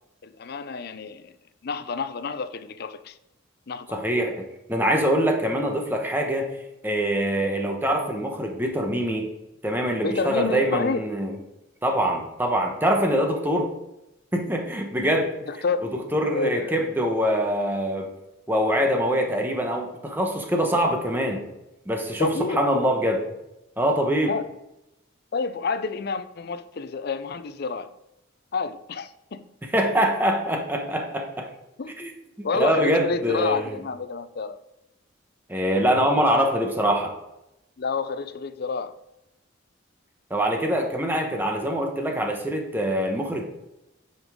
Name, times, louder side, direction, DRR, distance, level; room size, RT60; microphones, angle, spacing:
voice 1, 0.2-1.3 1.6-3.2 3.7-3.9 10.0-11.0 15.5-16.0 16.3-16.8 20.4-20.5 22.2-22.9 24.3-24.5 25.3-27.9 28.5-29.4 31.8-32.0 32.4-34.6 37.8-38.9, left 4 dB, 55° left, 12 dB, 0.5 m, -29 dB
voice 2, 3.9-4.4 4.7-6.5 6.8-9.3 9.6-11.4 11.8-13.7 14.3-15.3 16.1-18.1 18.5-21.4 21.9-23.2 23.8-24.3 29.7-31.5 32.0-32.1 32.5-33.7 35.5-37.1 40.3-43.4, equal, 10° right, 2 dB, 1.1 m, -24 dB
9.6 x 5.3 x 3.7 m, 0.89 s
head